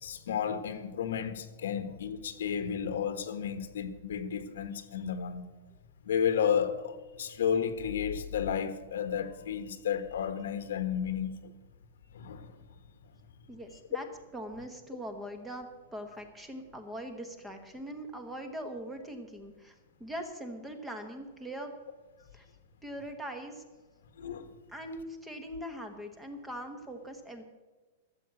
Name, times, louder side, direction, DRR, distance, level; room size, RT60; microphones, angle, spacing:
voice 1, 0.0-5.5 6.0-11.5 12.1-12.6 24.2-24.5, left 8 dB, 85° left, 1.3 m, -32 dB
voice 2, 13.5-14.1 14.3-19.7 20.0-21.7 22.3-22.5 22.8-23.6 24.7-27.4, equal, 5° right, 1.1 m, -41 dB
13.0 x 7.5 x 8.4 m
supercardioid pair, 175°, 0 cm